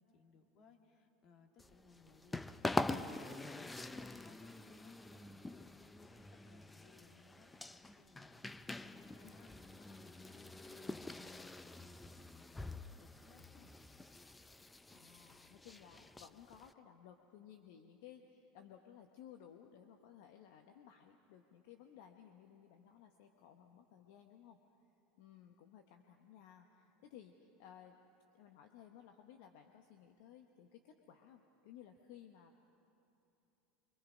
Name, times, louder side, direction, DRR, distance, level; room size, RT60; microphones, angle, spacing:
voice 1, 0.0-13.8, left 4 dB, 50° left, 4 dB, 2.2 m, -66 dB
sound 1, 1.6-16.7, left 2 dB, 10° left, 0.6 m, -45 dB
voice 2, 14.6-24.6 25.2-28.0 28.3-32.6, left 9 dB, 65° left, 5 dB, 1.0 m, -58 dB
25.0 x 24.0 x 5.1 m, 2.8 s
hypercardioid pair, 85°, 0 cm